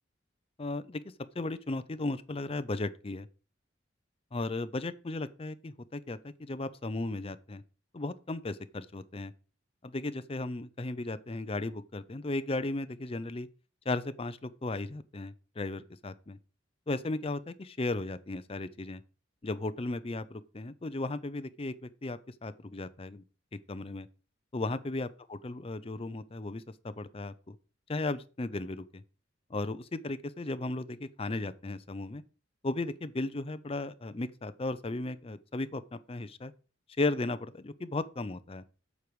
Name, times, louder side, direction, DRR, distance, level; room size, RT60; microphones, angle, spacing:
voice 1, 0.6-1.0 1.3-3.3 4.3-7.6 7.9-9.3 9.8-13.5 13.9-16.4 16.9-19.0 19.4-23.2 23.7-24.1 24.5-27.6 27.9-29.0 29.5-32.2 32.6-36.5 37.0-38.6, left 2 dB, 30° left, 0.6 m, -35 dB
8.1 x 4.6 x 6.8 m
head